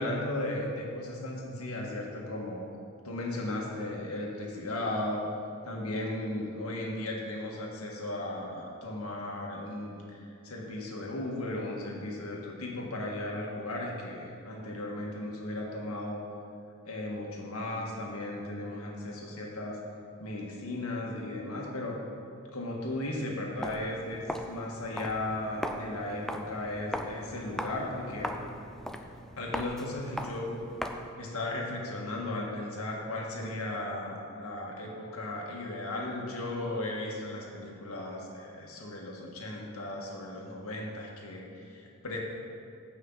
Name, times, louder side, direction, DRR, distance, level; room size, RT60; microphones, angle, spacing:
voice 1, 0.0-2.8 3.0-5.2 5.6-16.2 16.9-19.8 20.2-22.0 22.5-28.4 29.4-30.5 31.2-42.2, left 1 dB, 85° left, -2 dB, 1.7 m, -36 dB
Walk footsteps, 23.5-31.2, equal, ahead, 0.4 m, -39 dB
15.0 x 5.6 x 4.0 m, 2.5 s
head